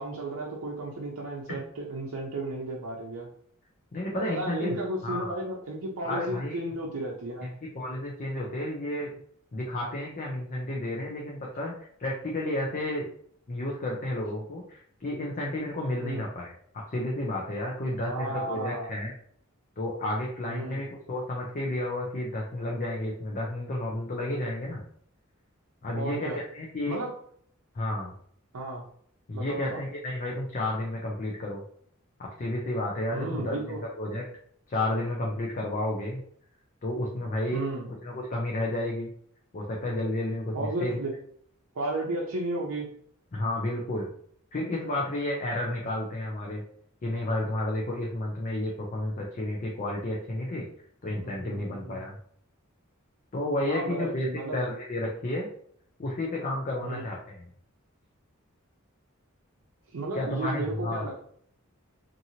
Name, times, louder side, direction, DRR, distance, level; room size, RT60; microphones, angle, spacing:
voice 1, 0.0-3.3 4.1-7.5 16.0-16.2 18.0-18.9 20.5-20.8 25.9-26.4 26.9-27.1 28.5-28.8 29.3-29.8 33.1-33.8 37.5-37.9 40.5-41.1 41.7-42.9 51.1-52.0 53.7-54.6 56.8-57.1 59.9-61.2, right 2 dB, 85° right, -4 dB, 0.6 m, -33 dB
voice 2, 3.9-4.8 5.0-5.3 6.0-6.6 7.4-7.5 7.7-9.1 9.5-11.7 12.0-13.0 13.5-16.5 16.9-19.1 19.8-24.8 25.8-27.0 27.7-28.1 29.3-31.6 32.2-33.6 34.0-34.2 34.7-36.2 36.8-37.6 38.0-39.1 39.5-41.0 43.3-44.1 44.5-46.6 47.0-50.7 51.0-52.2 53.3-55.5 56.0-57.4 60.1-61.1, left 1 dB, 40° left, -2 dB, 0.5 m, -31 dB
2.8 x 2.6 x 2.7 m, 0.62 s
head